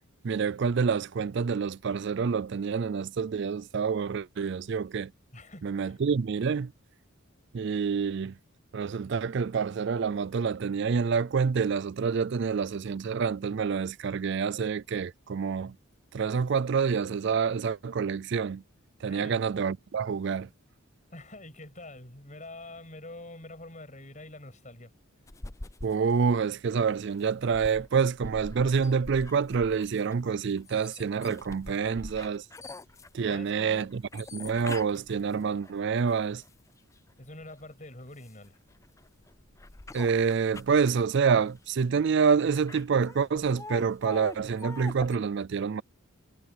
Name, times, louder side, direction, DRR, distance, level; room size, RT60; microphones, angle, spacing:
voice 1, 0.2-5.1 5.6-6.7 7.5-8.3 8.7-15.7 16.1-18.6 19.0-20.5 25.8-32.4 33.1-36.4 39.9-45.8, right 6 dB, 55° right, 0.4 m, -27 dB
voice 2, 5.3-6.0 19.1-19.4 21.1-24.9 33.3-33.9 37.2-38.6, left 2 dB, 35° left, 6.8 m, -46 dB
sound 1, 25.3-37.0 37.5-45.2, left 2 dB, 15° left, 0.5 m, -45 dB
head